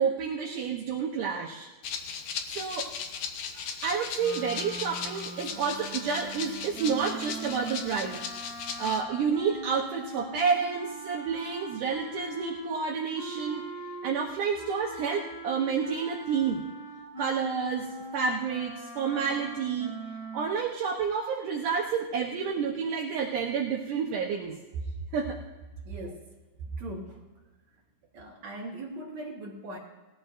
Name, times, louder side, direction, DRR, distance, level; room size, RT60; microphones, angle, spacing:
voice 1, 0.0-1.7 2.5-2.9 3.5-8.2 8.8-13.6 14.0-16.6 17.2-17.9 18.1-19.9 20.3-24.6 25.1-25.4, right 6 dB, 80° right, -1 dB, 1.8 m, -29 dB
Rattle (instrument), 1.8-9.0, left 6 dB, 85° left, 1.7 m, -37 dB
sound 1, 4.2-14.2 14.5-20.5, right 1 dB, 35° left, 4.2 m, -41 dB
voice 2, 25.9-26.4 26.8-27.3 28.1-29.8, right 1 dB, 60° right, -2 dB, 1.9 m, -40 dB
19.5 x 15.0 x 2.5 m, 1.3 s
omnidirectional pair, 5.0 m